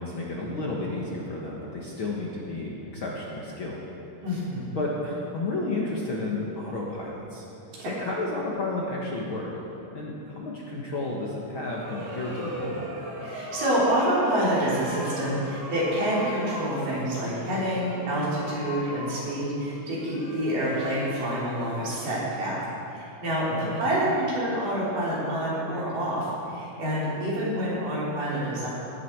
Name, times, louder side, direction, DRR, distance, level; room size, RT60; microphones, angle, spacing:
voice 1, 0.0-3.8 4.7-7.4 7.8-9.5 9.9-12.8 23.6-23.8, left 2 dB, 55° left, -4 dB, 1.5 m, -32 dB
voice 2, 4.2-4.8 7.8-7.9 13.2-28.7, equal, 80° right, -7 dB, 5.1 m, -27 dB
sound 1, 11.5-22.5, right 1 dB, 35° right, 2.1 m, -38 dB
16.0 x 11.0 x 4.6 m, 3.0 s
omnidirectional pair, 3.8 m